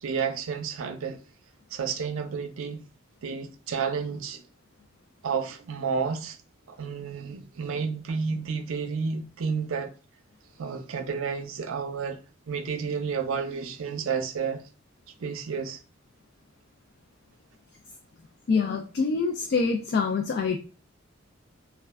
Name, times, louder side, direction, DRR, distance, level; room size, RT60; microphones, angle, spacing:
voice 1, 0.0-1.2 1.7-2.8 3.2-4.4 5.2-6.4 6.7-9.9 10.6-12.2 12.5-14.6 15.2-15.8, right 5 dB, 85° right, 0.4 m, -31 dB
voice 2, 18.5-20.6, left 4 dB, 50° left, 0.3 m, -25 dB
2.3 x 2.1 x 3.4 m
head